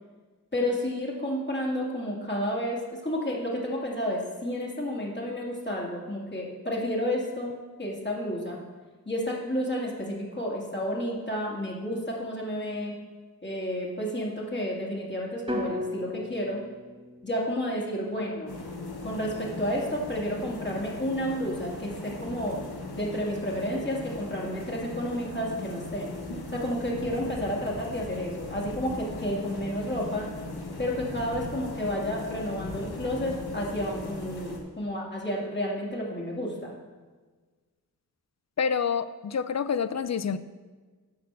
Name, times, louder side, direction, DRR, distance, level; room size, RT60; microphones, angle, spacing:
voice 1, 0.5-8.6 9.1-12.9 13.4-16.6 17.2-18.5 19.0-22.6 22.9-26.1 26.5-30.3 30.8-36.8, equal, 30° left, -4 dB, 2.4 m, -31 dB
sound 1, 15.5-19.5, left 2 dB, 15° right, 1.8 m, -38 dB
sound 2, 18.5-34.6, left 2 dB, 90° left, 1.4 m, -38 dB
voice 2, 38.6-40.4, left 6 dB, 45° left, 13 dB, 0.5 m, -27 dB
10.5 x 4.3 x 6.9 m, 1.4 s
wide cardioid pair, 60°, 37 cm